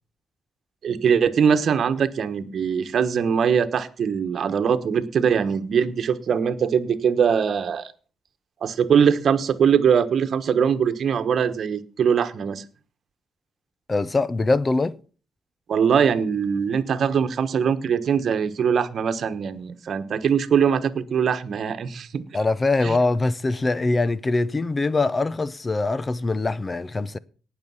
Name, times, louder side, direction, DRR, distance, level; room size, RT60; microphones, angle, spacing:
voice 1, 0.8-7.9 8.6-12.6 15.7-22.2 22.8-23.0, right 7 dB, 55° right, 1.2 m, -22 dB
voice 2, 13.9-15.0 22.3-27.2, left 3 dB, 25° left, 0.6 m, -23 dB
18.0 x 6.7 x 5.6 m
cardioid pair, 90°, 0 cm